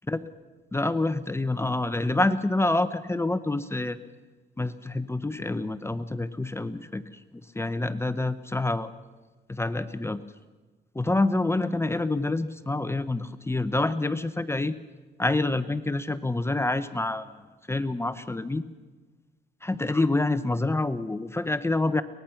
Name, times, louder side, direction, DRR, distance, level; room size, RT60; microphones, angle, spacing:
voice 1, 0.7-4.0 4.6-7.2 7.5-8.9 9.5-10.2 10.9-14.8 15.2-17.4 17.7-18.6 19.6-22.0, left 2 dB, 15° left, 13 dB, 0.9 m, -27 dB
23.5 x 19.5 x 5.9 m, 1.3 s
cardioid pair, 90°, 20 cm